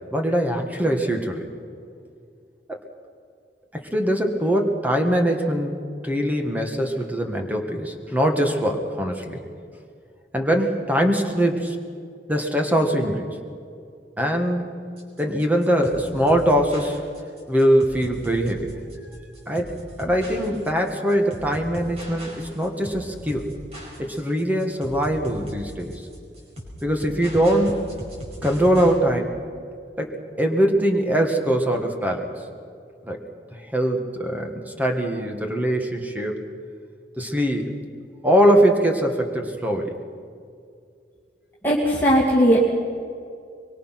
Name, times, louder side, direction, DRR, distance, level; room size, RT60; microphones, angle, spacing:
voice 1, 0.1-1.5 2.7-2.8 3.7-5.8 6.0-9.4 10.3-11.8 12.3-13.3 14.2-14.9 15.2-17.0 17.5-18.7 19.5-23.5 24.0-25.9 26.8-27.8 28.4-29.4 30.0-32.3 33.0-33.2 33.5-36.4 37.2-37.8 38.2-40.0, equal, 10° right, 3 dB, 1.7 m, -22 dB
sound 1, 15.0-29.0, equal, 40° right, 5.2 m, -38 dB
voice 2, 41.6-42.7, right 1 dB, 10° left, -6 dB, 2.5 m, -18 dB
24.0 x 23.0 x 6.0 m, 2.3 s
head